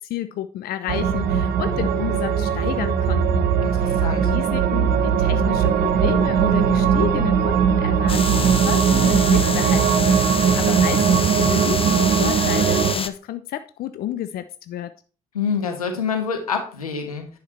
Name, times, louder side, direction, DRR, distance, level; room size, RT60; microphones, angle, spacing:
voice 1, 0.0-3.5 3.8-14.9, left 11 dB, 55° left, 11 dB, 0.6 m, -31 dB
sound 1, 0.9-12.9, right 7 dB, 60° right, 1.0 m, -19 dB
voice 2, 3.6-4.3 15.3-17.3, left 6 dB, 90° left, 4 dB, 1.4 m, -26 dB
sound 2, 8.1-13.1, left 5 dB, 30° left, 1.0 m, -28 dB
10.5 x 5.7 x 4.3 m, 0.39 s
figure-of-eight pair, 45°, 18 cm